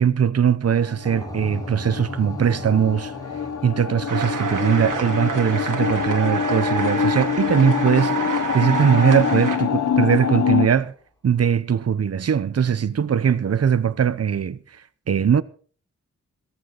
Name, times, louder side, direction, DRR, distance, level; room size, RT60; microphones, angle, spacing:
voice 1, 0.0-3.1 3.6-8.2 8.5-10.9 11.2-14.6 15.1-15.4, right 8 dB, 50° right, 0.8 m, -20 dB
sound 1, 0.7-10.7, left 7 dB, 60° left, 0.9 m, -25 dB
sound 2, 1.0-10.9, left 1 dB, 10° left, 4.4 m, -40 dB
sound 3, 4.1-9.6, right 5 dB, 80° right, 2.5 m, -29 dB
16.5 x 14.5 x 4.0 m
wide cardioid pair, 95°, 31 cm